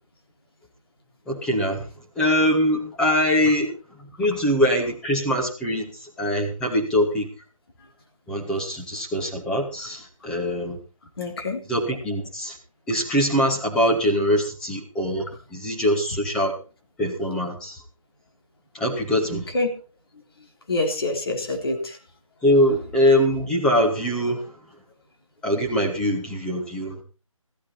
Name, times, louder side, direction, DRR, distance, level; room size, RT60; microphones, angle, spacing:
voice 1, 1.3-1.9 2.2-3.7 4.0-7.3 8.3-10.8 11.7-12.6 12.9-16.6 17.0-17.8 18.7-19.5 22.4-24.6 25.4-27.0, equal, 5° left, -2 dB, 1.9 m, -23 dB
voice 2, 11.2-11.6 19.3-19.7 20.1-20.2 20.7-22.0, left 2 dB, 45° left, 2 dB, 3.7 m, -26 dB
15.5 x 13.5 x 4.3 m, 0.34 s
figure-of-eight pair, 160°, 18 cm